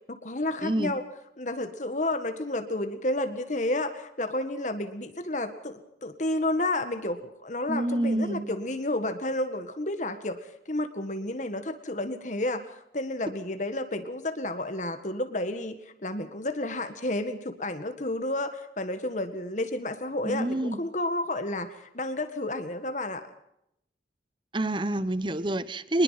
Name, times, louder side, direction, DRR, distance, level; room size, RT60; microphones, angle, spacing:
voice 1, 0.1-1.0 1.4-10.4 10.7-23.2, left 1 dB, 45° left, 8 dB, 1.8 m, -31 dB
voice 2, 0.6-0.9 7.7-8.5 20.2-20.8 24.5-26.0, right 1 dB, 25° right, 15 dB, 1.0 m, -27 dB
24.0 x 21.0 x 5.9 m, 0.77 s
head